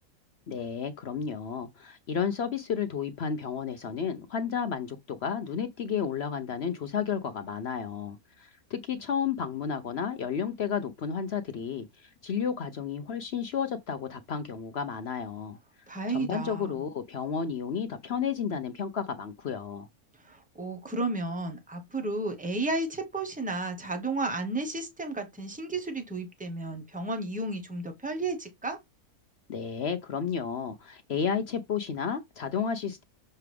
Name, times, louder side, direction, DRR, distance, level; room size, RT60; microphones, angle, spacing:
voice 1, 0.5-15.6 16.1-19.9 29.5-33.0, left 7 dB, 60° left, 0.7 m, -32 dB
voice 2, 15.9-16.7 20.2-28.8, right 2 dB, 5° right, 1.1 m, -33 dB
6.7 x 4.7 x 3.4 m
omnidirectional pair, 1.6 m